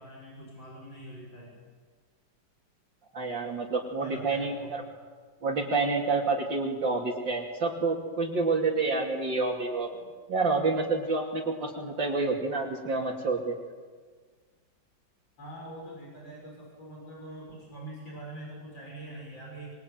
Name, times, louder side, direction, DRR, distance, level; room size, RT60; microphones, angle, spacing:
voice 1, 0.0-1.6 4.0-4.7 15.4-19.7, right 1 dB, 90° left, -3 dB, 7.5 m, -44 dB
voice 2, 3.1-4.8 5.4-9.9 10.3-13.6, right 3 dB, 75° right, -2 dB, 3.4 m, -28 dB
27.0 x 22.5 x 9.2 m, 1.6 s
omnidirectional pair, 2.0 m